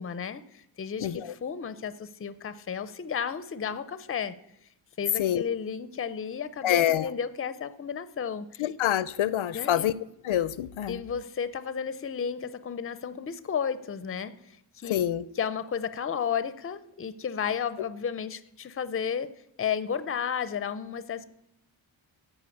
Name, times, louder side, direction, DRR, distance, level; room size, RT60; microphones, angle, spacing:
voice 1, 0.0-4.3 5.0-8.6 9.5-9.9 10.9-14.3 14.8-15.0 15.4-19.3 19.6-21.2, left 7 dB, 30° left, 14 dB, 0.5 m, -33 dB
voice 2, 1.0-1.3 5.2-5.4 6.6-7.1 8.6-9.9 10.2-11.0 14.9-15.2, left 11 dB, 75° left, 18 dB, 0.6 m, -26 dB
13.5 x 4.9 x 8.4 m, 0.79 s
wide cardioid pair, 175°, 48 cm